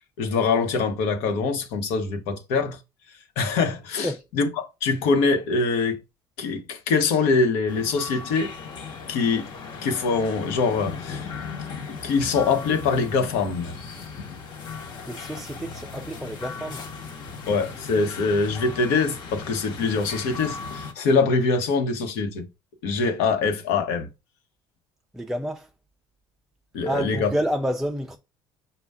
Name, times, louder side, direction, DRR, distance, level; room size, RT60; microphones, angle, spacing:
voice 1, 0.2-2.8 3.4-6.0 6.4-8.5 9.1-9.5 9.8-11.3 11.7-13.7 17.5-22.4 22.8-24.1 26.7-27.3, left 4 dB, 90° left, 0.9 m, -24 dB
sound 1, 7.7-20.9, left 5 dB, 50° left, 0.9 m, -37 dB
voice 2, 15.1-16.8 25.1-25.7 26.9-28.2, equal, 5° right, 0.3 m, -29 dB
5.3 x 2.2 x 3.4 m
cardioid pair, 130°, 10 cm